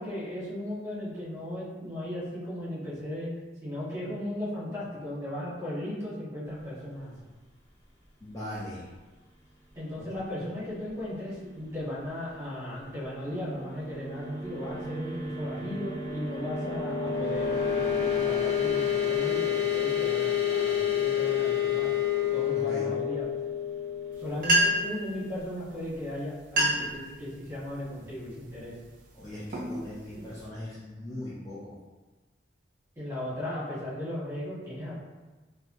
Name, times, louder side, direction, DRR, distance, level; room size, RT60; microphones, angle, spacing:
voice 1, 0.0-3.3 3.6-7.1 9.7-21.9 22.3-23.2 24.2-28.7 33.0-35.0, left 1 dB, 15° right, -10 dB, 1.4 m, -36 dB
voice 2, 8.2-8.9 10.0-10.1 22.5-22.9 29.1-31.8, left 1 dB, 20° left, -9 dB, 0.5 m, -40 dB
sound 1, 13.0-25.5, left 8 dB, 70° left, 0.7 m, -29 dB
sound 2, 24.1-24.2 24.4-25.0 25.9-26.0 26.4-27.0 27.5-27.8 28.4-28.7 29.2-30.5, right 1 dB, 50° right, 0.5 m, -27 dB
3.2 x 2.3 x 2.6 m, 1.2 s
head